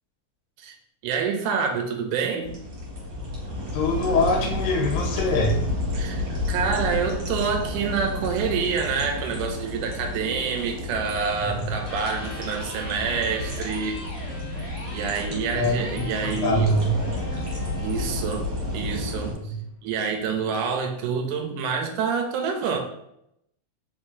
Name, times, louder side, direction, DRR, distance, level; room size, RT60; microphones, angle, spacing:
voice 1, 1.0-2.6 5.9-14.1 14.9-16.7 17.8-18.5 18.7-19.3 19.8-22.8, right 6 dB, 80° right, 3 dB, 2.0 m, -27 dB
sound 1, 2.4-19.3, left 2 dB, 55° right, 2.1 m, -31 dB
voice 2, 3.7-5.6 11.6-11.7 15.5-16.9 19.5-19.6, left 1 dB, 85° left, 0 dB, 2.4 m, -24 dB
Electric guitar, 11.8-19.8, left 1 dB, 30° left, 0.6 m, -40 dB
5.0 x 3.6 x 2.6 m, 0.77 s
omnidirectional pair, 3.9 m